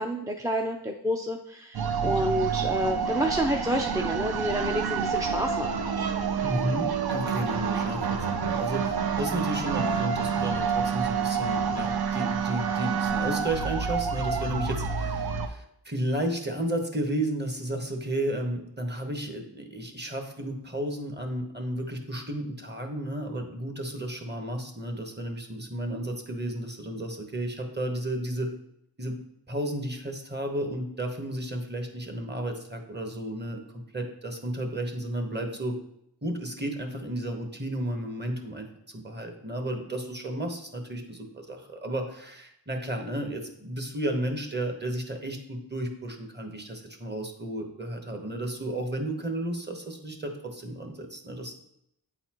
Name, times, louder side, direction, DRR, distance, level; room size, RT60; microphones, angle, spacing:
voice 1, 0.0-5.8, equal, 10° right, 2 dB, 0.4 m, -29 dB
sound 1, 1.7-15.5, right 6 dB, 65° right, 0.6 m, -28 dB
voice 2, 6.4-28.5 29.0-29.2 29.5-35.8 36.2-51.5, right 1 dB, 25° right, 4 dB, 1.1 m, -33 dB
8.8 x 4.0 x 3.0 m, 0.76 s
wide cardioid pair, 55°, 40 cm